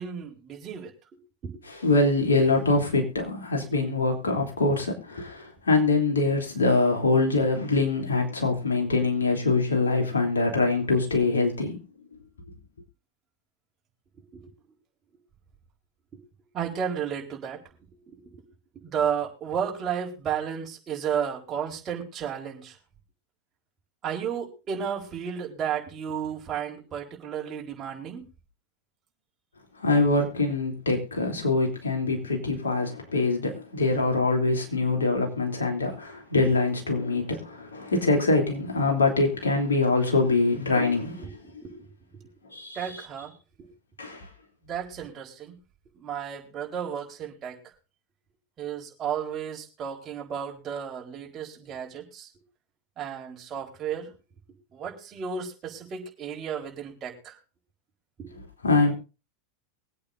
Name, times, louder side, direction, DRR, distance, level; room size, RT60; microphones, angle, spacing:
voice 1, 0.0-1.5 14.3-14.4 16.1-16.2 16.5-17.6 18.1-18.5 18.7-22.8 24.0-28.2 41.2-41.8 42.1-42.3 42.7-43.3 43.6-43.7 44.6-45.6 45.9-47.6 48.6-52.3 53.0-54.1 54.7-57.3 58.2-58.3, right 8 dB, 35° right, 0 dB, 4.3 m, -33 dB
voice 2, 1.8-11.8 29.8-41.2 42.5-43.0 44.0-44.2 58.6-58.9, left 3 dB, 85° left, 1 dB, 3.3 m, -24 dB
23.0 x 8.7 x 2.7 m, 0.31 s
hypercardioid pair, 90°, 0 cm